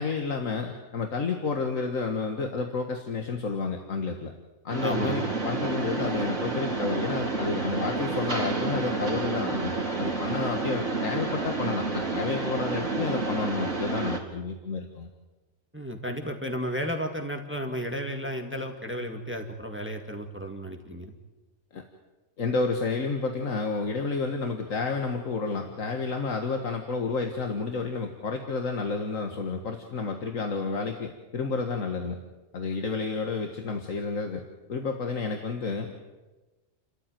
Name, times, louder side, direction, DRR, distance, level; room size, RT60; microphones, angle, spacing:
voice 1, 0.0-4.3 4.6-15.1 21.7-21.8 22.4-32.2 32.5-34.4 34.7-36.0, left 4 dB, 75° left, 4 dB, 2.0 m, -30 dB
Mechanisms, 4.7-14.2, right 3 dB, 65° right, 3.4 m, -30 dB
voice 2, 4.8-5.2 15.7-21.1, equal, 10° right, 4 dB, 2.0 m, -33 dB
30.0 x 13.5 x 9.1 m, 1.2 s
omnidirectional pair, 1.4 m